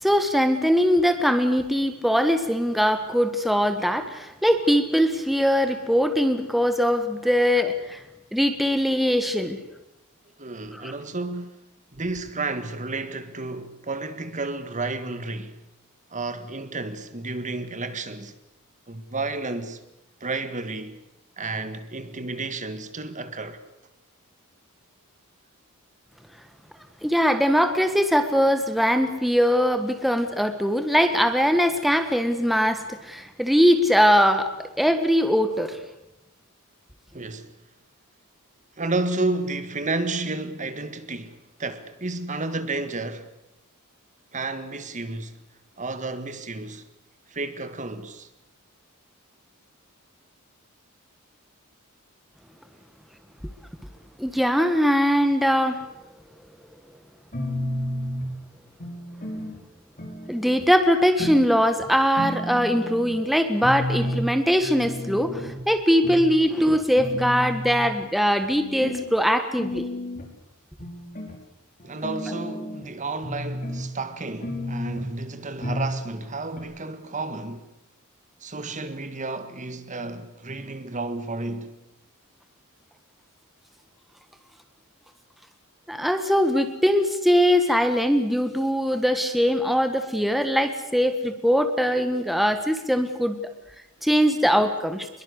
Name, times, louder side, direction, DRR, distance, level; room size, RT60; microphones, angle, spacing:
voice 1, 0.0-8.0 8.3-9.6 10.7-10.9 27.0-35.8 54.2-55.8 60.3-69.9 85.9-93.5 94.0-95.1, equal, ahead, 1.5 m, -21 dB
voice 2, 10.4-11.6 11.9-15.6 16.1-18.3 18.9-19.8 20.2-21.0 21.4-23.6 37.1-37.5 38.8-43.3 44.3-45.4 45.8-46.8 47.3-48.3 71.8-77.7 78.4-81.7, right 3 dB, 35° right, 1.8 m, -31 dB
sound 1, 57.3-58.3 58.8-59.6 60.0-60.6 61.2-61.5 61.8-61.9 62.2-63.1 63.6-64.2 64.6-65.6 66.0-66.2 66.6-66.7 67.0-67.9 68.4-69.0 69.6-70.3 70.8-71.3 71.8-72.8 73.2-73.8 74.4-75.1 75.6-75.9 76.2-76.3 76.6-76.7, left 1 dB, 40° left, 5.3 m, -31 dB
24.0 x 22.5 x 8.2 m
head